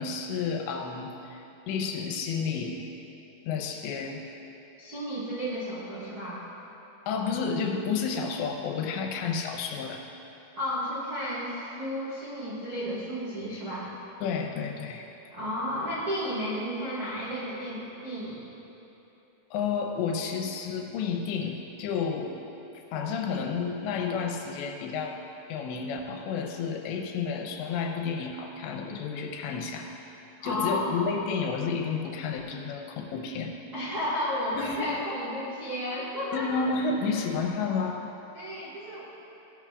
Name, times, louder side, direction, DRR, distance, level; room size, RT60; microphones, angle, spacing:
voice 1, 0.0-2.9 3.5-4.2 7.1-10.0 14.2-15.1 19.5-22.4 22.9-25.2 25.5-29.9 30.4-33.5 34.5-35.0 36.3-38.1, left 5 dB, 85° left, 2 dB, 3.1 m, -31 dB
voice 2, 4.8-6.4 10.6-13.9 15.3-18.4 30.4-31.0 33.7-36.6 37.0-37.3 38.3-39.0, equal, 75° right, -9 dB, 0.8 m, -33 dB
16.0 x 11.5 x 2.4 m, 3.0 s
omnidirectional pair, 5.0 m